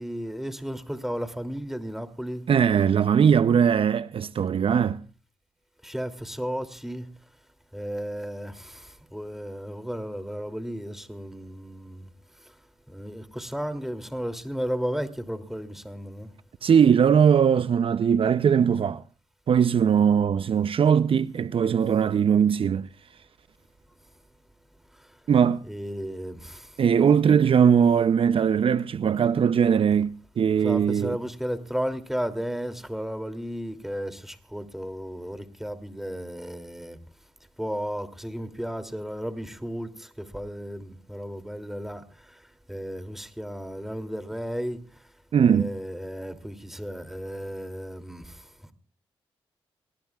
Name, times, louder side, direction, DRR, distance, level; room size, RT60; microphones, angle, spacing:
voice 1, 0.0-2.4 5.8-7.1 7.7-8.8 9.1-12.1 12.9-16.3 19.8-20.0 25.6-26.6 30.6-37.0 37.6-42.0 42.7-44.8 45.4-48.2, equal, 5° right, 2.9 m, -34 dB
voice 2, 2.5-5.0 16.6-19.0 19.5-22.9 25.3-25.6 26.8-30.1 30.4-31.2 45.3-45.7, right 7 dB, 55° right, 0.7 m, -20 dB
27.5 x 20.0 x 2.4 m
hypercardioid pair, 40°, 11 cm